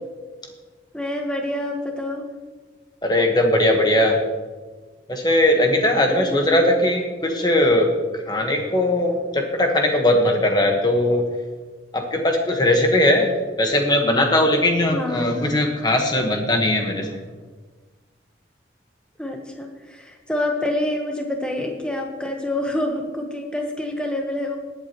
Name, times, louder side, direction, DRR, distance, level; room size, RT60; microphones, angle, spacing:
voice 1, 0.9-2.2 6.1-6.7 14.9-15.5 19.2-24.6, left 1 dB, 5° left, 2 dB, 1.2 m, -27 dB
voice 2, 3.0-4.2 5.1-7.9 8.3-11.3 11.9-13.3 13.6-17.2, left 1 dB, 25° left, 2 dB, 1.4 m, -19 dB
19.5 x 8.2 x 3.1 m, 1.4 s
head